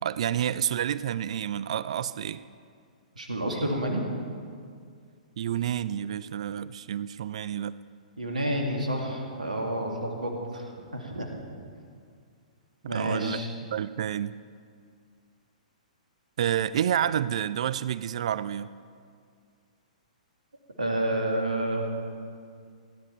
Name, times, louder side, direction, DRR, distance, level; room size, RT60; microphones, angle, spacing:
voice 1, 0.0-2.4 5.4-7.7 12.8-13.4 13.7-14.3 16.4-18.7, right 10 dB, 50° right, 17 dB, 0.3 m, -29 dB
voice 2, 3.2-4.0 8.2-11.3 12.9-13.5 20.8-21.9, right 1 dB, 75° right, 2 dB, 2.1 m, -29 dB
17.5 x 10.5 x 4.5 m, 2.2 s
figure-of-eight pair, 110°, 4 cm